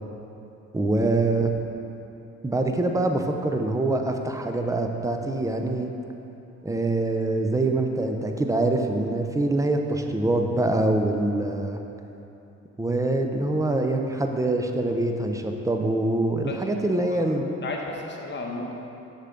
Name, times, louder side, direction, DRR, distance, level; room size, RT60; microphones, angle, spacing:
voice 1, 0.7-1.5 2.4-5.9 6.6-11.8 12.8-17.5, right 2 dB, 10° right, 4 dB, 0.5 m, -24 dB
voice 2, 16.9-17.2 17.6-18.7, left 3 dB, 35° left, 0 dB, 1.0 m, -33 dB
6.7 x 5.7 x 3.8 m, 2.9 s
cardioid pair, 90°, 30 cm